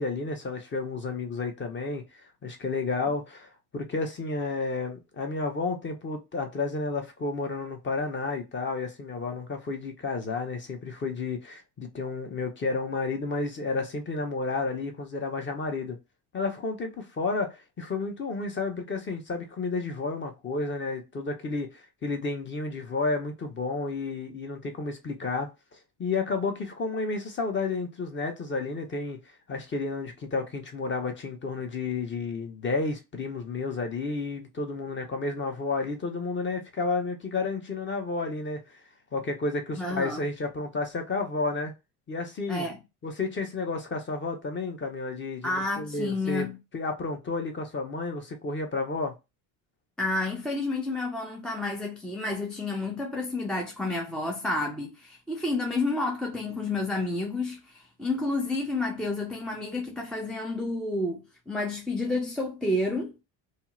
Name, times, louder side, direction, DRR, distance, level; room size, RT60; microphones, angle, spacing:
voice 1, 0.0-2.0 2.4-16.0 16.3-25.5 26.0-29.2 29.5-38.6 39.1-41.7 42.1-42.7 43.0-46.5 46.7-49.1, left 3 dB, 25° left, 0.7 m, -31 dB
voice 2, 39.8-40.2 42.5-42.8 45.4-46.6 50.0-63.1, left 2 dB, ahead, 0.3 m, -30 dB
2.7 x 2.0 x 2.3 m
hypercardioid pair, 80°, 46 cm